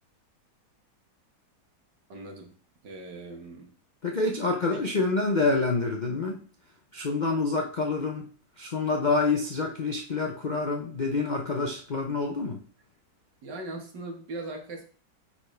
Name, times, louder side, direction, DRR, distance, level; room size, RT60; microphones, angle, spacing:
voice 1, 2.1-2.6 2.8-3.8 4.7-5.0 13.4-14.8, right 2 dB, 80° right, 1 dB, 2.1 m, -40 dB
voice 2, 4.0-6.4 6.9-8.3 8.6-12.6, left 3 dB, 55° left, 1 dB, 0.5 m, -27 dB
9.7 x 4.3 x 3.3 m, 0.42 s
omnidirectional pair, 1.9 m